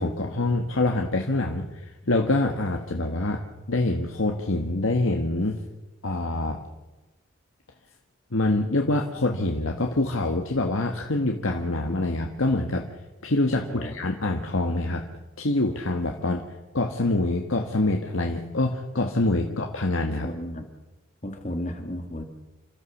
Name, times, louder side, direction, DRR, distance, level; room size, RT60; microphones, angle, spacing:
voice 1, 0.0-5.6 6.0-6.6 8.3-12.9 13.2-15.1 15.4-16.4 16.7-20.3, left 2 dB, 80° left, 3 dB, 1.5 m, -25 dB
voice 2, 13.5-14.0 16.2-16.3 19.4-19.6 20.2-20.7 21.2-22.2, left 1 dB, 35° left, 6 dB, 2.1 m, -34 dB
28.5 x 13.0 x 7.2 m, 1.1 s
head